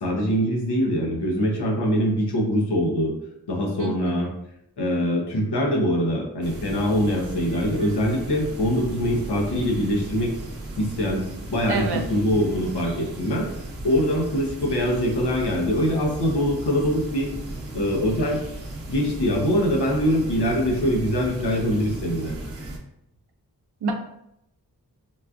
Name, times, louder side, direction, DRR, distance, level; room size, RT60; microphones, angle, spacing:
voice 1, 0.0-3.1 3.5-4.3 4.8-10.3 10.8-13.5 13.8-17.3 17.7-18.4 18.9-22.3, equal, 80° left, -1 dB, 0.8 m, -23 dB
voice 2, 3.8-4.3 11.7-12.1 23.8-23.9, right 4 dB, 75° right, 4 dB, 0.6 m, -28 dB
sound 1, 6.4-22.8, right 1 dB, 35° right, 0.9 m, -36 dB
4.1 x 2.2 x 2.4 m, 0.80 s
cardioid pair, 40°, 40 cm